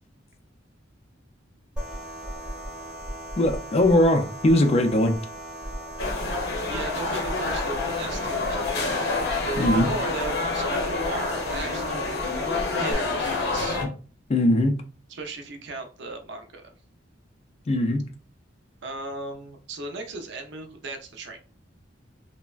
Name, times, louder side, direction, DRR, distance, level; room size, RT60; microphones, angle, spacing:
sound 1, 1.8-12.9, right 1 dB, 5° right, 0.8 m, -37 dB
voice 1, 3.4-5.1 9.6-9.9 14.3-14.8 17.7-18.0, left 1 dB, 30° left, 0.4 m, -20 dB
sound 2, 6.0-13.9, left 3 dB, 60° left, 0.7 m, -28 dB
voice 2, 6.7-9.2 9.4-12.1 12.7-13.8 15.1-16.7 18.8-21.4, right 2 dB, 60° right, 0.5 m, -36 dB
3.3 x 2.1 x 2.3 m
head